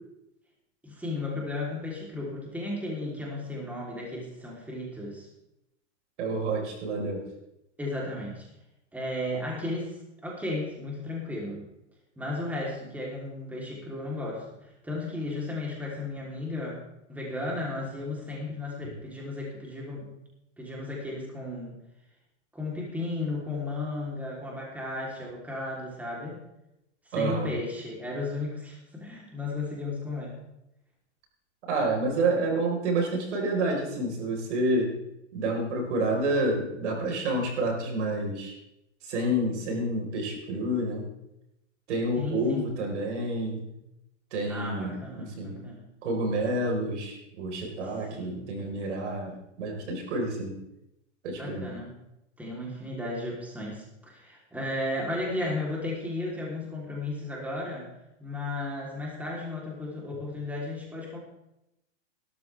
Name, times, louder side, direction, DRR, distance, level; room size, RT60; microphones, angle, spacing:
voice 1, 0.8-5.3 7.8-8.5 8.9-11.6 12.2-16.8 17.1-20.1 20.6-21.8 22.5-26.4 27.0-30.4 42.2-42.7 44.5-45.9 47.8-48.4 51.3-52.0 52.4-57.9 58.2-61.2, left 2 dB, 5° right, -3 dB, 3.4 m, -34 dB
voice 2, 6.2-7.2 27.1-27.5 31.7-35.0 35.3-38.5 39.0-41.0 41.9-43.7 44.3-45.6 46.0-50.5 51.2-51.7, right 1 dB, 70° right, 1 dB, 4.6 m, -29 dB
16.5 x 13.0 x 3.5 m, 0.86 s
hypercardioid pair, 135°, 36 cm